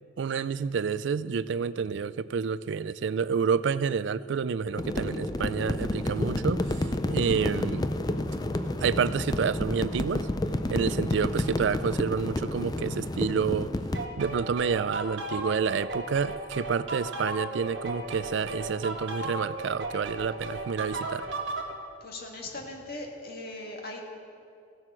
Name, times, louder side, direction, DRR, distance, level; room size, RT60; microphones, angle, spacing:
voice 1, 0.2-7.8 8.8-10.3 10.7-13.7 14.2-21.3, right 6 dB, 70° right, 16 dB, 0.4 m, -29 dB
sound 1, 4.8-14.1, left 1 dB, 20° left, 0.4 m, -30 dB
sound 2, 13.9-21.7, right 2 dB, 85° right, 1.4 m, -35 dB
voice 2, 22.0-24.0, left 2 dB, 55° left, 0 dB, 1.8 m, -39 dB
15.5 x 7.7 x 6.2 m, 2.4 s
head